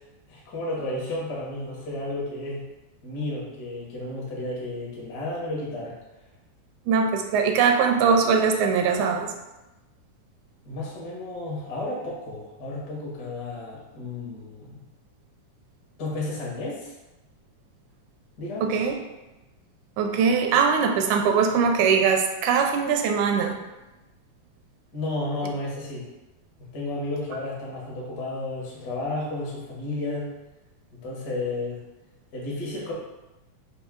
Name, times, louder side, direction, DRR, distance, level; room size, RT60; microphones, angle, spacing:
voice 1, 0.3-2.6 3.0-5.9 10.6-14.8 16.0-16.9 18.4-18.9 24.9-26.1 26.7-30.3 30.9-31.8 32.3-32.9, left 2 dB, 55° left, -5 dB, 1.1 m, -32 dB
voice 2, 6.9-9.3 18.6-19.0 20.0-23.6, right 6 dB, 80° right, 3 dB, 1.9 m, -21 dB
5.4 x 2.6 x 3.6 m, 1.0 s
omnidirectional pair, 3.5 m